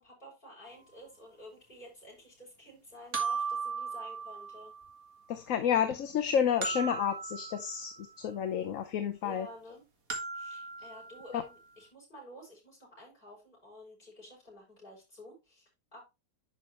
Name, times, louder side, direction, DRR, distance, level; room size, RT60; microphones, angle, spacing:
voice 1, 0.0-4.7 9.2-9.8 10.3-16.0, left 1 dB, 30° left, 6.2 m, -51 dB
sound 1, 0.7-0.8 3.1-5.0 6.6-8.3 10.1-11.5, right 5 dB, 60° right, 2.2 m, -37 dB
voice 2, 5.3-9.5 11.3-11.4, left 8 dB, 60° left, 1.1 m, -30 dB
11.0 x 5.6 x 3.0 m
omnidirectional pair, 1.7 m